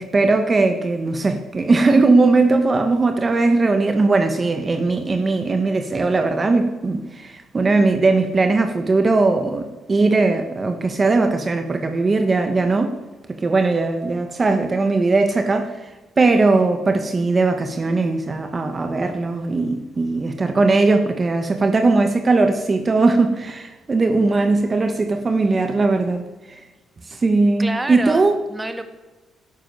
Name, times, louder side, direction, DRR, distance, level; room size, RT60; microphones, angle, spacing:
voice 1, 0.0-12.9 13.4-26.2 27.1-28.4, right 3 dB, 30° right, 1.4 m, -19 dB
voice 2, 27.6-28.8, right 2 dB, 15° right, 1.6 m, -28 dB
12.5 x 11.0 x 8.0 m
cardioid pair, 90°, 0 cm